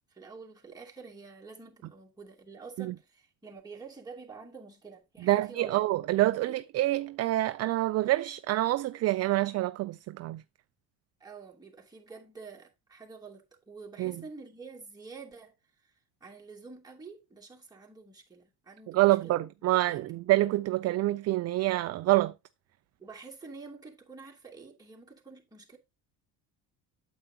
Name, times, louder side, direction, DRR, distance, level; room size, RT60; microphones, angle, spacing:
voice 1, 0.1-5.8 6.3-6.5 11.2-15.6 15.8-15.9 16.2-20.1 23.0-25.8, right 4 dB, 10° right, 2.7 m, -48 dB
voice 2, 5.2-10.4 14.0-14.1 18.9-22.3, right 17 dB, 45° right, 0.4 m, -27 dB
8.8 x 8.0 x 2.8 m
supercardioid pair, 105°, 38 cm